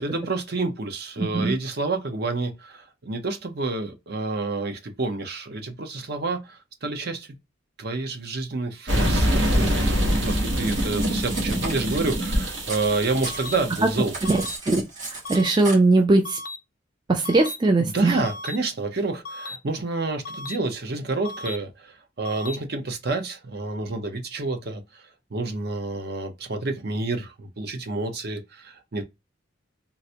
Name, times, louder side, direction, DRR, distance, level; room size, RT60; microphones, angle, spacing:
voice 1, 0.0-7.4 7.8-14.1 17.8-25.0 25.3-29.0, right 3 dB, 55° right, 0.7 m, -29 dB
voice 2, 1.2-1.5 14.2-16.4 17.1-18.2, right 2 dB, 25° right, 0.4 m, -21 dB
sound 1, 8.9-14.5, equal, 75° right, 1.2 m, -25 dB
Cutlery silverware, 9.6-12.9 13.2-15.8, right 3 dB, 40° right, 2.1 m, -36 dB
sound 2, 13.3-13.6 14.3-14.6 15.3-15.6 16.3-16.6 17.3-17.6 18.3-18.6 19.3-19.6 20.3-20.6 21.3-21.6 22.3-22.6, left 2 dB, 50° left, 0.5 m, -36 dB
3.8 x 2.1 x 2.7 m
head